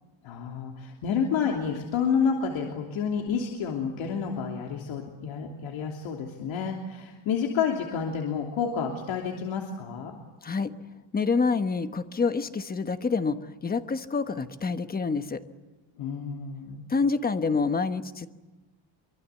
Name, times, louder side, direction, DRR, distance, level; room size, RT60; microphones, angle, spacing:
voice 1, 0.2-10.2 16.0-16.8, left 6 dB, 65° left, 1 dB, 3.2 m, -29 dB
voice 2, 11.1-15.4 16.9-18.3, left 4 dB, 20° left, 9 dB, 1.1 m, -27 dB
24.5 x 24.0 x 8.4 m, 1.2 s
cardioid pair, 170°, 49 cm